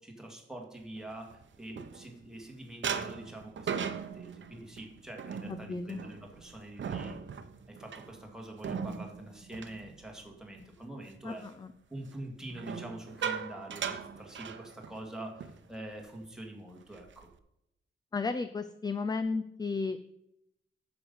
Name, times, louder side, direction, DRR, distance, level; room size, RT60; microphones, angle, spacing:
voice 1, 0.0-7.2 7.7-11.5 11.9-17.3, right 1 dB, 5° right, 0 dB, 2.0 m, -45 dB
sound 1, 1.0-2.4 2.8-10.7 11.0-11.3 12.5-15.1 15.4-15.6 15.9-16.2 16.7-17.4, right 7 dB, 65° right, 0.8 m, -39 dB
voice 2, 5.5-6.0 11.2-11.7 18.1-20.0, left 4 dB, 20° left, 11 dB, 0.4 m, -34 dB
9.5 x 7.0 x 5.4 m, 0.82 s
wide cardioid pair, 170°, 20 cm